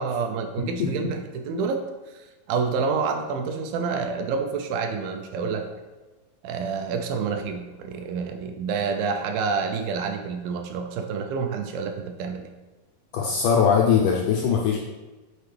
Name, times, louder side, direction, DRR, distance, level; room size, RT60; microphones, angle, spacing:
voice 1, 0.0-1.8 2.1-5.7 6.4-12.5, right 5 dB, 80° right, 5 dB, 2.2 m, -28 dB
voice 2, 0.6-0.9 13.1-14.8, left 6 dB, 80° left, -1 dB, 1.8 m, -21 dB
8.2 x 4.4 x 3.3 m, 1.2 s
omnidirectional pair, 4.3 m